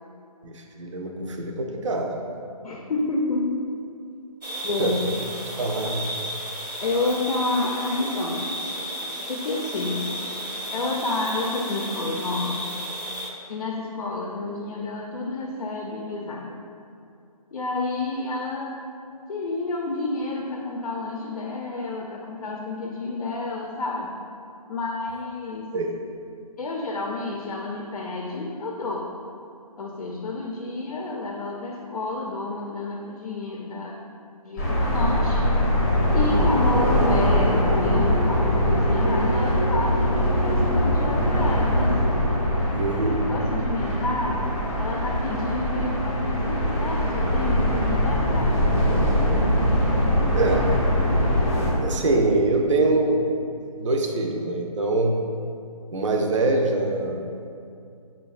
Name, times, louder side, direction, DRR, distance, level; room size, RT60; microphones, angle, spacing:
voice 1, 0.4-2.2 4.5-5.0 5.5-6.1 25.7-25.9 42.7-43.2 49.4-49.5 50.3-50.8 51.8-53.3 53.8-55.2 55.9-57.5, right 2 dB, 50° right, 2 dB, 0.4 m, -24 dB
voice 2, 2.6-3.8 4.6-5.0 6.8-8.5 9.3-10.2 10.7-12.6 13.5-16.6 17.5-18.8 19.3-24.2 24.7-25.7 26.6-29.1 29.8-34.0 34.4-35.4 36.1-42.0 43.3-48.6 50.8-50.9, left 2 dB, 70° left, -1 dB, 0.4 m, -29 dB
sound 1, 4.4-13.3, equal, 90° right, 0.7 m, -33 dB
sound 2, 34.6-51.7, equal, 20° left, 0.6 m, -22 dB
5.1 x 2.2 x 2.3 m, 2.5 s
figure-of-eight pair, 155°, 20 cm